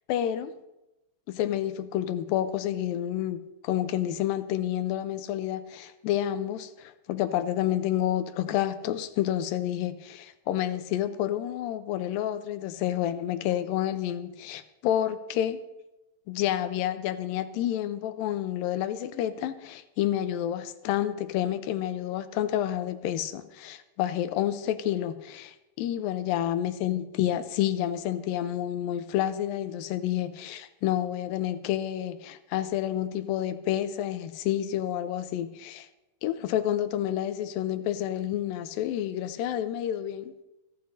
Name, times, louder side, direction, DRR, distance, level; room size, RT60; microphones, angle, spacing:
voice 1, 0.1-0.5 1.3-3.4 3.6-15.6 16.3-35.9 36.2-40.3, left 11 dB, 90° left, 11 dB, 2.4 m, -29 dB
25.5 x 10.5 x 2.7 m, 0.94 s
omnidirectional pair, 4.1 m